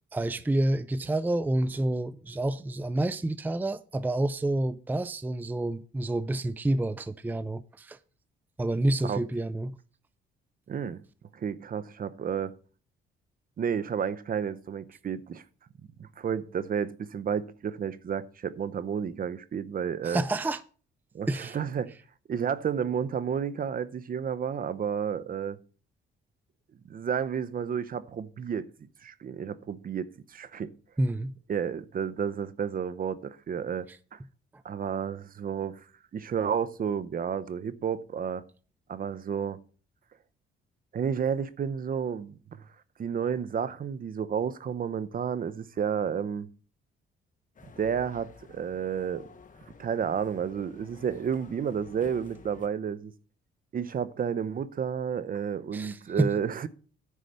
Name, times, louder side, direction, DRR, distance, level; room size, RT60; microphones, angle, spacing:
voice 1, 0.1-8.0 8.6-9.7 20.0-20.6 21.3-21.6 31.0-31.3 55.7-56.3, right 1 dB, 10° right, 0.4 m, -28 dB
voice 2, 10.7-11.0 11.3-12.5 13.6-15.4 16.0-20.2 21.1-21.9 22.3-25.6 26.8-28.7 29.0-30.7 31.5-34.2 34.6-35.8 36.1-38.4 38.9-39.6 40.9-42.4 43.0-46.5 47.8-49.3 49.8-53.1 53.7-56.7, right 7 dB, 45° right, 0.7 m, -31 dB
sound 1, 47.5-52.7, left 4 dB, 40° left, 1.3 m, -52 dB
10.0 x 4.8 x 6.8 m
cardioid pair, 90°, 20 cm